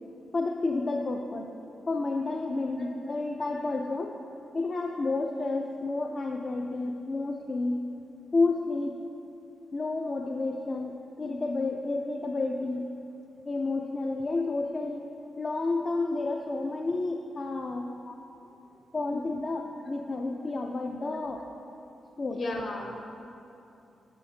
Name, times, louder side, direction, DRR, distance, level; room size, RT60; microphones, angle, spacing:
voice 1, 0.3-1.5 1.9-4.2 4.5-7.8 8.3-9.0 9.7-12.9 13.5-15.1 15.4-17.9 18.9-21.4 22.2-22.4, left 3 dB, 30° left, 2 dB, 0.3 m, -30 dB
voice 2, 2.8-3.2 3.5-3.7 17.4-17.5 18.0-18.1 19.1-19.3 21.1-21.2 22.3-23.0, left 2 dB, 50° left, 0 dB, 1.1 m, -37 dB
9.9 x 7.1 x 2.7 m, 2.7 s
wide cardioid pair, 155°, 0 cm